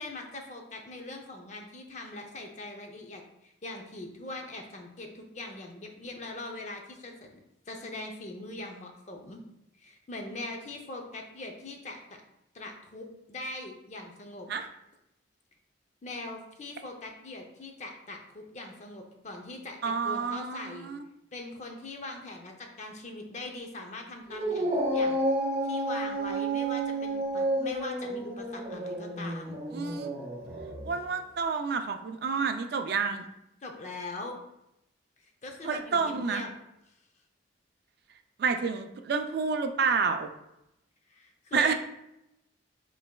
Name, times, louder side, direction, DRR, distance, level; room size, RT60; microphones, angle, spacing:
voice 1, 0.0-7.3 7.7-9.4 9.8-12.2 12.5-14.5 16.0-20.9 21.3-25.2 25.6-29.6 33.6-34.3 35.4-36.5 41.1-41.7, left 2 dB, 40° left, 3 dB, 0.6 m, -41 dB
voice 2, 19.8-21.0 29.7-30.1 30.8-33.2 35.6-36.4 38.4-40.3 41.5-41.7, right 5 dB, 55° right, 7 dB, 0.3 m, -29 dB
Dog, 24.3-30.9, right 1 dB, 30° right, 1.0 m, -31 dB
5.2 x 4.0 x 2.2 m, 0.85 s
head